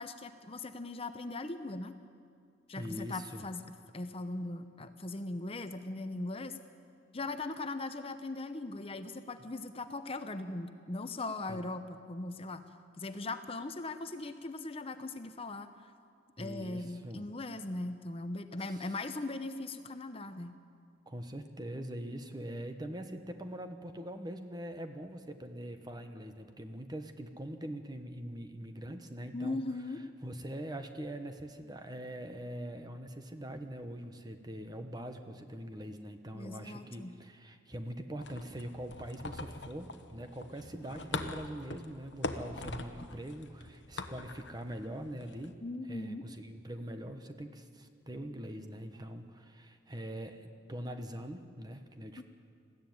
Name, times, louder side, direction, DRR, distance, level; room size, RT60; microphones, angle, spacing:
voice 1, 0.0-1.9 2.7-6.6 7.1-12.6 13.0-15.7 16.4-20.6 29.3-30.0 36.3-37.1 45.6-46.3 52.2-52.3, left 2 dB, 30° left, 9 dB, 0.8 m, -39 dB
voice 2, 2.7-3.5 11.5-11.7 16.4-17.3 18.7-18.9 21.1-29.6 30.2-45.6 45.9-52.2, right 1 dB, 20° right, 7 dB, 1.2 m, -43 dB
sound 1, 38.2-45.5, left 2 dB, 70° left, 1.1 m, -43 dB
20.5 x 14.5 x 9.5 m, 2.3 s
head